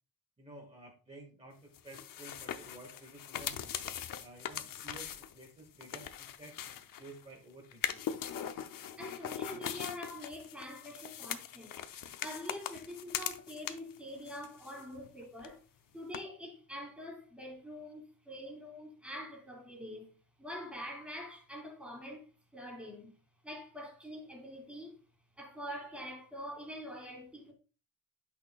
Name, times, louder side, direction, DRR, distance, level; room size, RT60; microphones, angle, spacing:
voice 1, 0.4-3.6 4.1-8.0, right 1 dB, 20° right, 1.5 m, -53 dB
sound 1, 1.7-7.2 7.7-14.0 14.3-15.1 15.4-15.5 16.1-16.2, left 9 dB, 70° left, 0.7 m, -41 dB
voice 2, 9.0-11.8 12.2-15.6 15.9-23.1 23.4-25.0 25.4-27.5, equal, 5° right, 2.2 m, -45 dB
8.7 x 6.1 x 2.2 m
wide cardioid pair, 175°, 35 cm